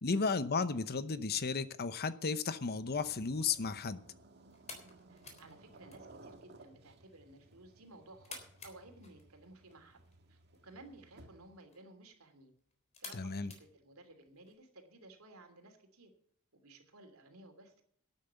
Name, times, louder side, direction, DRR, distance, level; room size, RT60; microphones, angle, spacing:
voice 1, 0.0-4.0 13.1-13.5, left 4 dB, 45° left, 0.8 m, -34 dB
sound 1, 2.5-11.7, right 2 dB, 50° right, 1.9 m, -59 dB
sound 2, 4.2-14.5, left 4 dB, 30° left, 3.6 m, -56 dB
voice 2, 5.1-10.0 10.3-12.5 13.0-16.1 16.5-17.8, right 2 dB, 75° right, 3.0 m, -57 dB
12.5 x 9.2 x 6.9 m
head